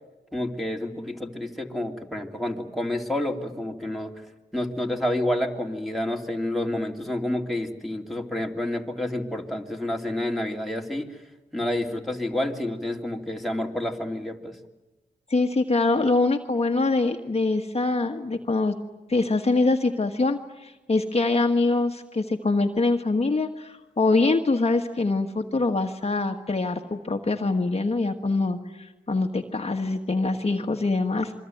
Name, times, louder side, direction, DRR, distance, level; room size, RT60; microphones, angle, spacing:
voice 1, 0.3-4.1 4.5-11.2 11.5-14.6, left 1 dB, ahead, 1 dB, 2.8 m, -29 dB
voice 2, 15.3-18.7 19.1-31.3, left 3 dB, 35° left, 4 dB, 1.5 m, -24 dB
27.0 x 23.5 x 9.3 m, 1.1 s
cardioid pair, 80°, 18 cm